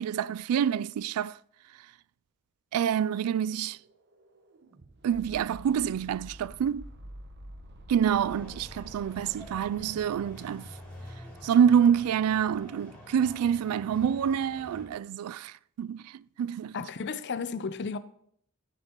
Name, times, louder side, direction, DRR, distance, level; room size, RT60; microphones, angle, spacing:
voice 1, 0.0-1.4 2.7-3.8 5.0-6.9 7.9-10.7 11.4-16.8, right 8 dB, 90° right, 0.3 m, -27 dB
sound 1, 2.9-11.0, equal, 50° right, 0.9 m, -49 dB
sound 2, 8.0-14.9, equal, 10° left, 4.9 m, -47 dB
voice 2, 16.7-18.0, left 5 dB, 55° left, 0.6 m, -33 dB
11.5 x 9.7 x 3.0 m
head